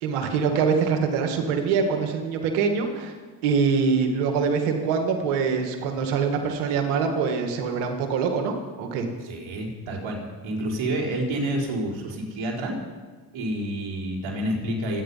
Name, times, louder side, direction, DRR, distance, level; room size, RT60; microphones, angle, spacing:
voice 1, 0.0-3.2 3.4-9.1, right 5 dB, 90° right, 5 dB, 1.9 m, -24 dB
voice 2, 9.2-10.2 10.4-12.8 13.3-15.0, right 1 dB, 65° right, 0 dB, 4.3 m, -28 dB
24.5 x 9.5 x 5.6 m, 1.4 s
supercardioid pair, 55°, 49 cm